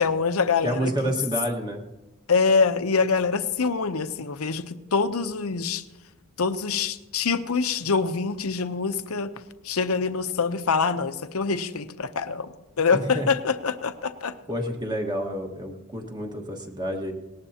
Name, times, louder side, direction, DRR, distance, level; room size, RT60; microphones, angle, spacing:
voice 1, 0.0-1.1 2.3-5.8 6.4-9.3 9.6-14.4, left 5 dB, 75° left, 10 dB, 0.8 m, -25 dB
voice 2, 0.6-1.8 12.9-13.3 14.5-17.1, equal, 20° right, 2 dB, 1.5 m, -29 dB
18.5 x 18.0 x 2.9 m, 1.1 s
head